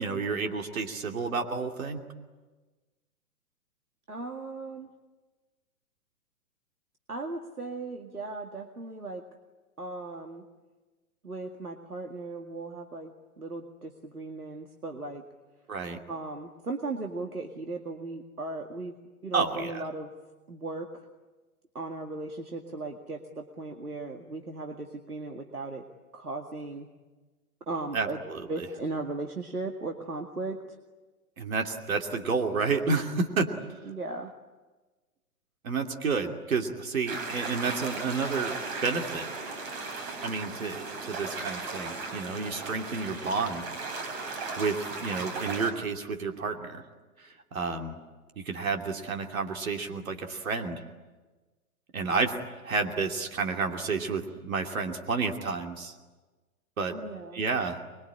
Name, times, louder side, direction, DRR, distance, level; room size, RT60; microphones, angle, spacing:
voice 1, 0.0-2.0 15.7-16.0 19.3-19.8 27.9-28.4 31.4-33.5 35.6-38.5 38.8-39.3 40.2-43.7 44.6-46.8 47.2-48.0 48.4-50.8 51.9-52.4 52.6-55.9 56.8-57.0 57.3-57.8, right 4 dB, 65° right, 3 dB, 2.8 m, -30 dB
voice 2, 4.1-4.9 7.1-9.2 9.8-10.4 11.2-15.2 16.1-19.0 19.2-20.1 20.5-20.9 21.7-25.8 26.1-26.9 27.7-28.2 28.5-30.6 33.8-34.3 56.9-57.4, right 3 dB, 85° right, 4 dB, 2.2 m, -37 dB
sound 1, 37.1-45.7, right 3 dB, 40° right, 5.6 m, -36 dB
26.0 x 22.5 x 9.9 m, 1.3 s
figure-of-eight pair, 115°, 44 cm